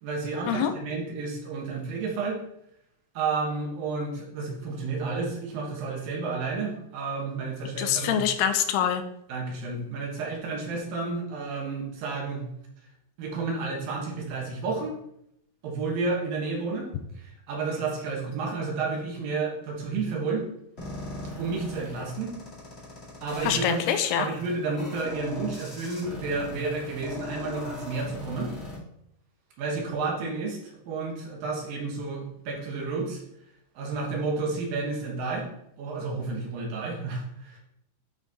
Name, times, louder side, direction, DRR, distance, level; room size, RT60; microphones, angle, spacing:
voice 1, 0.0-2.4 3.1-8.2 9.3-12.4 13.2-15.0 15.6-20.5 21.4-22.3 23.2-23.9 24.2-28.5 29.6-33.2 33.8-35.5 35.8-37.6, right 4 dB, 65° right, -1 dB, 2.8 m, -31 dB
voice 2, 7.8-9.0 23.4-24.3, left 9 dB, 85° left, 8 dB, 2.6 m, -25 dB
sound 1, 20.8-28.8, left 1 dB, 25° left, 1.4 m, -40 dB
9.9 x 4.5 x 4.0 m, 0.75 s
omnidirectional pair, 4.7 m